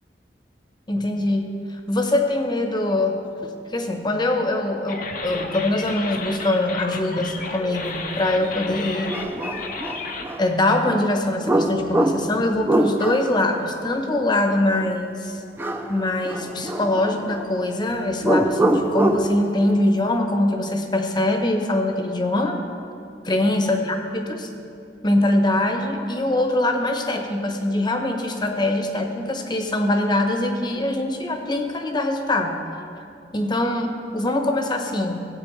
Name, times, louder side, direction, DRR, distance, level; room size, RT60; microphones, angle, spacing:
voice 1, 0.9-3.2 3.7-9.2 10.4-15.4 15.9-22.6 23.3-24.5 25.0-32.6 33.3-35.3, left 1 dB, 25° left, 4 dB, 0.9 m, -23 dB
sound 1, 4.9-10.2, left 4 dB, 50° left, 0.8 m, -33 dB
sound 2, 8.4-8.5 9.1-10.5 11.4-13.4 15.6-16.0 16.3-17.5 18.2-19.3, right 1 dB, 15° right, 0.5 m, -23 dB
16.5 x 8.5 x 3.2 m, 2.6 s
head